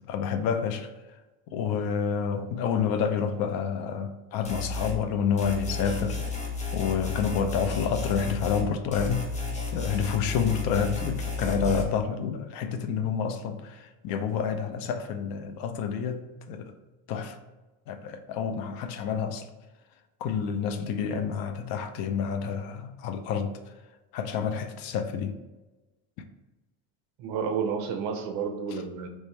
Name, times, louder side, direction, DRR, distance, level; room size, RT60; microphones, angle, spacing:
voice 1, 0.1-0.9 1.5-6.2 6.7-9.3 9.7-16.7 17.1-17.4 17.9-19.5 20.2-23.5 24.1-25.4 28.7-28.8, left 7 dB, 60° left, 8 dB, 0.6 m, -29 dB
sound 1, 4.4-5.0 5.4-8.7 8.9-11.8, left 3 dB, 15° left, 0.8 m, -32 dB
voice 2, 27.2-29.1, right 6 dB, 60° right, 5 dB, 0.8 m, -30 dB
3.5 x 3.1 x 4.3 m, 1.1 s
cardioid pair, 135°, 40 cm